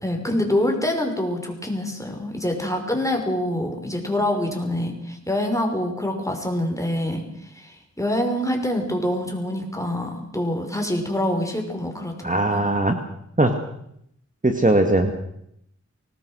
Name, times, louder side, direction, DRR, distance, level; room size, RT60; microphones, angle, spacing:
voice 1, 0.0-12.6 14.8-14.9, left 1 dB, 10° left, 3 dB, 5.8 m, -26 dB
voice 2, 12.2-13.0 13.4-13.5 14.4-15.1, right 2 dB, 25° right, 5 dB, 2.2 m, -19 dB
24.5 x 19.5 x 6.5 m, 0.75 s
wide cardioid pair, 50°, 29 cm